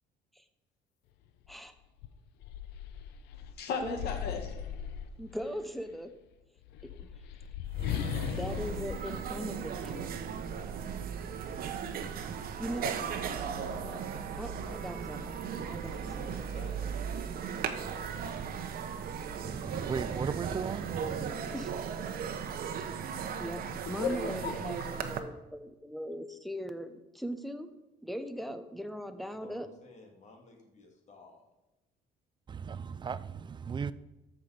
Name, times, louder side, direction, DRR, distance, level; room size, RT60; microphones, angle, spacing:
sound 1, 1.4-1.6 2.0-5.6 6.6-10.2, left 9 dB, 90° left, 0.8 m, -38 dB
voice 1, 3.3-4.5 23.2-23.4 23.7-24.5 24.8-25.0, left 6 dB, 70° left, 1.9 m, -36 dB
voice 2, 5.2-6.2 6.8-7.1 8.3-10.2 12.6-13.5 13.8-14.1 14.4-15.4 15.6-16.5 21.5-22.2 23.4-27.7 28.0-29.7, equal, ahead, 0.9 m, -40 dB
sound 2, 7.5-7.6 7.7-25.2, right 7 dB, 60° right, 1.1 m, -37 dB
voice 3, 15.8-17.2 17.5-18.2 29.4-31.5, left 2 dB, 45° left, 2.7 m, -53 dB
voice 4, 19.4-21.3 32.5-33.9, right 6 dB, 25° right, 0.5 m, -36 dB
13.5 x 6.0 x 5.0 m
cardioid pair, 110°, 17 cm